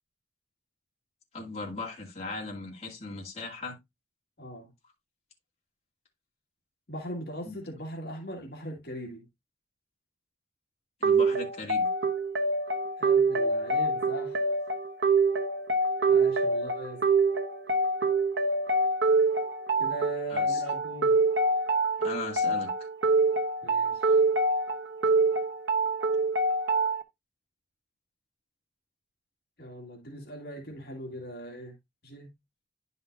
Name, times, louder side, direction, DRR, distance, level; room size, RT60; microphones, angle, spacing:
voice 1, 1.3-3.8 7.4-7.6 11.0-11.9 20.3-20.6 22.0-22.7, left 3 dB, 35° left, 2.3 m, -38 dB
voice 2, 4.4-4.7 6.9-9.2 13.0-14.4 16.1-17.0 19.8-21.2 23.6-24.2 29.6-31.7 32.0-32.3, equal, 55° left, 2.0 m, -40 dB
sound 1, 11.0-27.0, right 3 dB, 80° right, 1.1 m, -25 dB
10.5 x 5.7 x 2.6 m
head